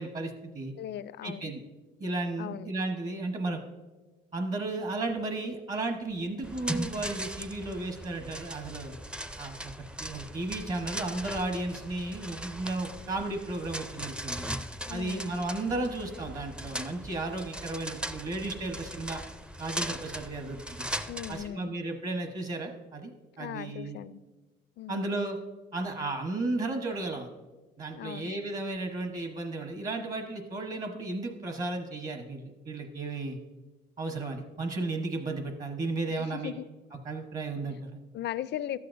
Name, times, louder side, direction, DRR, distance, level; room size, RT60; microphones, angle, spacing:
voice 1, 0.0-0.7 1.2-1.6 2.0-3.6 4.3-9.0 9.4-9.7 10.0-14.5 14.9-19.2 19.6-20.9 21.3-23.1 23.4-24.0 24.9-25.4 25.7-27.3 27.8-33.4 34.0-36.5 37.0-38.0, right 2 dB, 40° right, 4 dB, 1.0 m, -34 dB
voice 2, 0.8-1.5 2.4-2.8 14.9-15.4 21.1-21.8 23.4-24.2 24.8-25.1 28.0-28.3 36.1-36.7 37.7-37.8 38.1-38.8, left 11 dB, 60° left, 16 dB, 0.4 m, -38 dB
sound 1, 6.4-21.5, right 1 dB, 5° right, 0.4 m, -39 dB
12.5 x 8.5 x 2.6 m, 1.2 s
cardioid pair, 90°, 20 cm